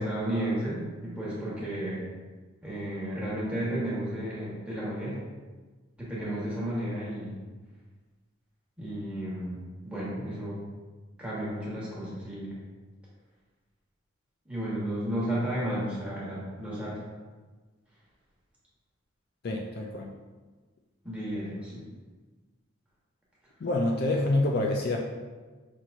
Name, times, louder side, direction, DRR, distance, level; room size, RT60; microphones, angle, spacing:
voice 1, 0.0-2.0 2.6-5.2 6.0-7.4 8.8-9.6 9.8-10.6 11.2-12.5 14.5-17.0 21.0-21.8, right 1 dB, 5° right, -8 dB, 1.1 m, -33 dB
voice 2, 19.4-20.1 23.6-25.0, left 2 dB, 45° left, 0 dB, 0.3 m, -27 dB
5.7 x 2.9 x 2.5 m, 1.3 s
head